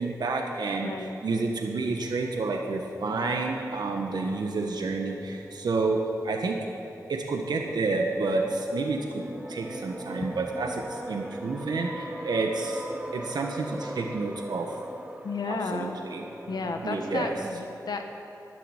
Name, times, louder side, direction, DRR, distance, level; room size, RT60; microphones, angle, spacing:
voice 1, 0.0-6.6 7.1-9.2 9.5-12.8 13.1-14.7 15.5-16.2 16.8-17.3, right 3 dB, 85° right, 2 dB, 1.3 m, -29 dB
voice 2, 0.8-1.1 15.2-16.0 16.5-18.1, left 4 dB, 75° left, 5 dB, 1.3 m, -32 dB
sound 1, 0.9-17.5, right 1 dB, 15° right, 0.9 m, -42 dB
13.0 x 7.8 x 9.9 m, 2.9 s
wide cardioid pair, 95°, 7 cm